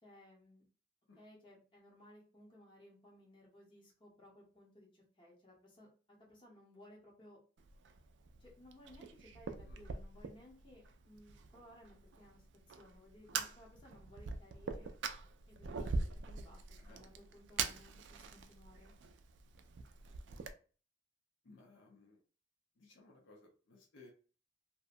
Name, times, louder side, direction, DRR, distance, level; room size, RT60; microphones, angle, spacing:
voice 1, 0.0-0.6 1.2-5.9 6.2-7.4 8.4-14.9 15.5-16.6 16.9-18.9, left 1 dB, 25° left, -3 dB, 0.9 m, -60 dB
Fire, 7.6-20.5, right 4 dB, 65° right, 0.3 m, -44 dB
voice 2, 21.4-22.2 22.8-24.1, left 3 dB, 70° left, 0 dB, 0.7 m, -61 dB
2.7 x 2.2 x 2.5 m, 0.37 s
head